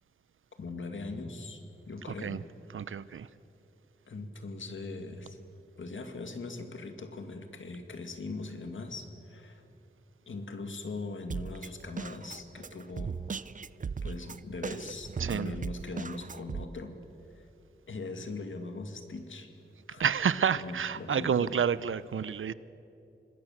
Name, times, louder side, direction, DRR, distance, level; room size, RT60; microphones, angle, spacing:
voice 1, 0.6-1.6 1.9-2.4 4.1-5.4 5.8-9.6 10.3-13.2 14.0-17.0 17.3-17.5 17.9-19.5 19.9-20.0 20.5-21.5, left 3 dB, 75° left, 2.3 m, -40 dB
voice 2, 2.7-3.3 15.2-15.5 20.0-22.5, right 7 dB, 80° right, 0.7 m, -29 dB
Drum kit, 11.3-16.7, right 5 dB, 40° right, 0.5 m, -38 dB
26.5 x 20.5 x 7.4 m
wide cardioid pair, 110°, 20 cm